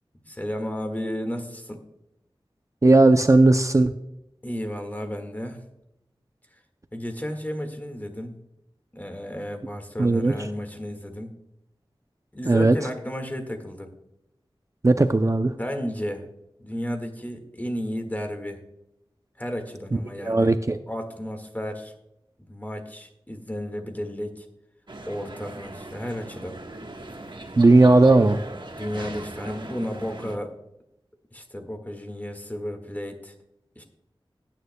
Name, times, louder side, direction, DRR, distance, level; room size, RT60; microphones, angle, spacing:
voice 1, 0.2-1.8 4.4-5.6 6.9-8.4 8.9-11.3 12.3-13.9 15.6-16.3 16.6-18.6 19.4-20.5 20.9-21.9 22.5-24.5 25.1-26.6 28.7-30.5 31.3-33.3 33.8-33.9, equal, 15° left, 5 dB, 1.7 m, -33 dB
voice 2, 2.8-4.0 10.0-10.4 12.4-12.8 14.8-15.6 20.2-20.8 27.6-28.4, right 2 dB, 35° right, 9 dB, 0.5 m, -17 dB
sound 1, 24.9-30.4, right 2 dB, 55° right, 1.3 m, -39 dB
17.5 x 9.2 x 2.2 m, 0.86 s
wide cardioid pair, 60°, 10 cm